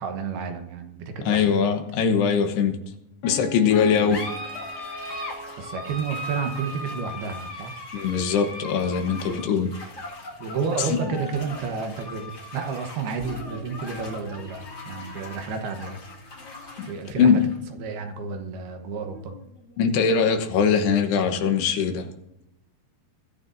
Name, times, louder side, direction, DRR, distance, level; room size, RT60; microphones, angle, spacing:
voice 1, 0.0-1.6 3.7-4.1 5.6-7.7 10.4-16.0 16.8-17.4 17.8-19.3, right 5 dB, 70° right, 5 dB, 3.0 m, -31 dB
voice 2, 1.3-2.8 3.2-4.2 7.9-9.7 11.1-11.2 16.8-16.9 17.2-17.4 19.8-22.1, left 6 dB, 75° left, 6 dB, 3.1 m, -21 dB
Piano, 3.2-7.0 7.3-7.4, left 1 dB, 55° left, 2.6 m, -38 dB
sound 1, 3.7-20.6, left 1 dB, 35° left, 1.7 m, -39 dB
sound 2, 13.2-18.5, right 1 dB, 55° right, 2.9 m, -44 dB
22.0 x 13.0 x 2.7 m, 0.89 s
omnidirectional pair, 4.9 m